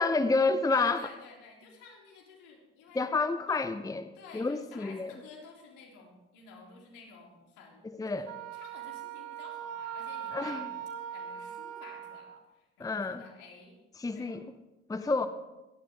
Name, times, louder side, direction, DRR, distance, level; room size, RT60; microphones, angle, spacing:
voice 1, 0.0-1.0 2.9-5.1 7.8-8.3 10.3-10.7 12.8-13.2 14.0-14.4 14.9-15.3, left 3 dB, 10° left, 9 dB, 0.8 m, -29 dB
voice 2, 0.7-3.1 3.5-3.6 4.1-10.6 11.1-13.8 14.1-14.4 15.0-15.2, left 4 dB, 65° left, -2 dB, 3.5 m, -52 dB
Wind instrument woodwind instrument, 8.3-12.4, right 9 dB, 45° right, 1.4 m, -40 dB
21.5 x 11.5 x 3.6 m, 1.0 s
figure-of-eight pair, 50°, 34 cm